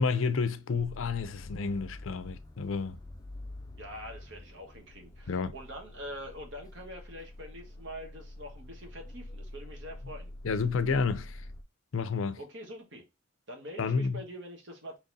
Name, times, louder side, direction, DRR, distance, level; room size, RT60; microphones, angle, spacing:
voice 1, 0.0-3.0 5.3-5.5 10.4-11.4 11.9-12.4 13.8-14.2, left 4 dB, 70° left, 0.5 m, -30 dB
sound 1, 0.8-11.6, left 1 dB, 20° left, 0.4 m, -46 dB
voice 2, 3.8-10.3 12.4-13.0 13.5-15.0, equal, 60° right, 1.4 m, -44 dB
4.0 x 3.0 x 3.9 m
head